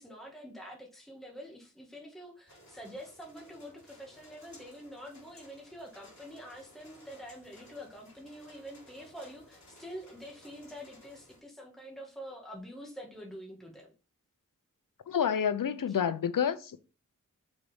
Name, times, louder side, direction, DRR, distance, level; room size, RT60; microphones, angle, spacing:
voice 1, 0.0-13.9 15.9-16.0, equal, ahead, 1.8 m, -46 dB
sound 1, 2.5-11.4, left 1 dB, 60° left, 3.1 m, -57 dB
voice 2, 15.1-16.8, left 8 dB, 80° left, 0.7 m, -29 dB
6.5 x 4.1 x 5.5 m
wide cardioid pair, 85°, 32 cm